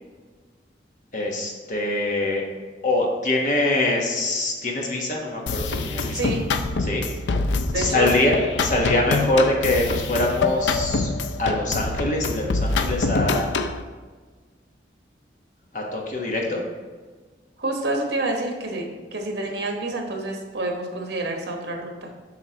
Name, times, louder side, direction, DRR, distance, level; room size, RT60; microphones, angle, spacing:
voice 1, 1.1-2.4 2.8-6.3 6.8-7.0 7.7-11.1 11.4-13.5 15.7-16.6, left 2 dB, 45° left, 0 dB, 1.1 m, -24 dB
sound 1, 5.5-13.8, left 3 dB, 90° left, 0.4 m, -25 dB
voice 2, 6.1-6.5 7.7-8.1 17.6-18.9 19.1-22.1, right 2 dB, 75° right, 1 dB, 1.2 m, -28 dB
7.5 x 5.6 x 2.9 m, 1.4 s
head